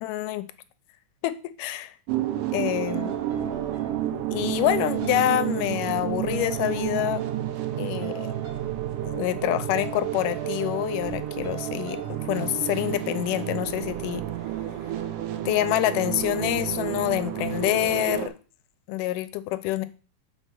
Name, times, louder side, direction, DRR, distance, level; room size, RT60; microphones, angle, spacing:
voice 1, 0.0-0.5 1.2-1.9 2.5-3.1 4.3-7.2 7.8-8.3 9.0-14.2 15.5-18.3 18.9-19.9, left 14 dB, 90° left, 2.2 m, -26 dB
sound 1, 2.1-18.3, right 12 dB, 90° right, 2.4 m, -30 dB
sound 2, 2.9-4.3 4.6-5.5 6.3-7.6 8.0-8.8 9.7-11.1 11.4-12.1, right 5 dB, 45° right, 2.6 m, -42 dB
5.7 x 4.5 x 5.8 m
omnidirectional pair, 3.6 m